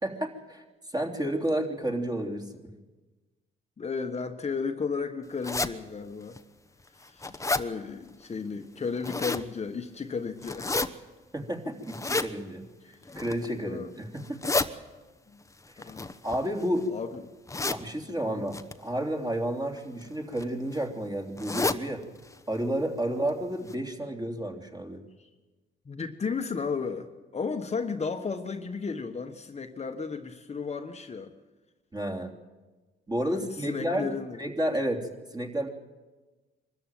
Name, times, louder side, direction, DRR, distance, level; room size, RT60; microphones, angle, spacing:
voice 1, 0.0-0.6 0.9-2.5 11.3-14.4 15.7-15.8 16.2-16.9 17.7-22.0 22.5-25.0 31.9-32.3 33.1-34.1 34.4-35.7, right 1 dB, 20° right, 3 dB, 3.3 m, -31 dB
voice 2, 3.8-6.4 7.0-11.0 13.6-13.9 14.6-14.7 15.3-15.4 15.8-16.1 16.9-17.2 18.2-18.5 23.0-23.3 25.2-25.3 25.8-31.3 33.3-34.4, left 5 dB, 35° left, 6 dB, 1.3 m, -34 dB
sound 1, 5.4-5.7 6.4-6.5 6.9-7.6 8.8-9.5 10.4-10.9 11.9-12.3 13.0-13.5 14.2-14.7 15.8-16.8 17.5-17.8 18.5-18.7 19.7-20.0 20.4-20.5 20.7-20.8 21.4-21.8 22.2-22.3 22.6-22.7 23.3-23.4 23.7-23.8, left 3 dB, 15° left, 1.0 m, -30 dB
24.0 x 13.5 x 9.2 m, 1.2 s
cardioid pair, 90°, 20 cm